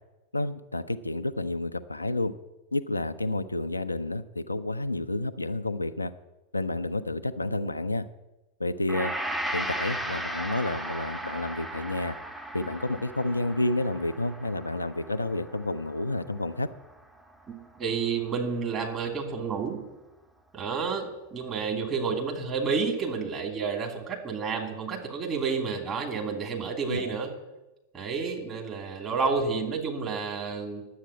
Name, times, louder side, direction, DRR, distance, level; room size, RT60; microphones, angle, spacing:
voice 1, 0.3-2.3 2.7-6.1 6.5-8.1 8.6-9.1 9.5-12.2 12.5-16.7 26.9-27.1, left 2 dB, 80° left, 11 dB, 0.5 m, -30 dB
Gong, 8.9-17.3 17.7-17.8, right 1 dB, 5° right, 1.0 m, -36 dB
voice 2, 17.5-19.8 20.5-27.3 27.9-30.9, right 5 dB, 25° right, 1 dB, 2.8 m, -30 dB
10.5 x 8.2 x 7.5 m, 1.0 s
figure-of-eight pair, 90°, 0 cm